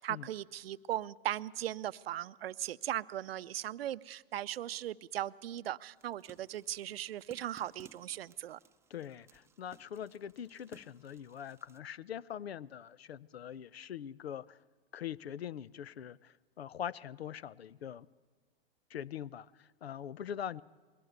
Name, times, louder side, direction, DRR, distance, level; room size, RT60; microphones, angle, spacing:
voice 1, 0.0-8.6, right 12 dB, 75° right, 0.6 m, -38 dB
sound 1, 6.0-11.8, right 5 dB, 10° right, 0.7 m, -61 dB
voice 2, 8.9-14.6 14.9-18.1 18.9-20.6, left 9 dB, 90° left, 0.6 m, -43 dB
21.5 x 18.0 x 8.0 m
hypercardioid pair, 110°, 30 cm